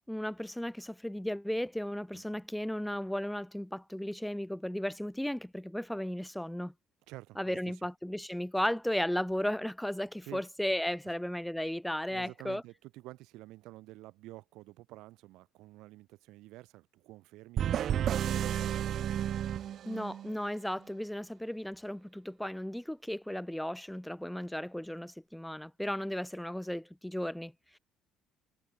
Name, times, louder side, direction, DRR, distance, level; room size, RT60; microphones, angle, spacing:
voice 1, 0.1-6.7 7.4-12.6 19.8-27.8, left 1 dB, 5° left, 0.5 m, -35 dB
voice 2, 7.1-7.9 10.2-10.4 11.0-11.1 12.1-19.2, right 18 dB, 90° right, 4.3 m, -50 dB
sound 1, 17.6-20.4, right 10 dB, 50° right, 0.7 m, -32 dB
cardioid pair, 150°, 0 cm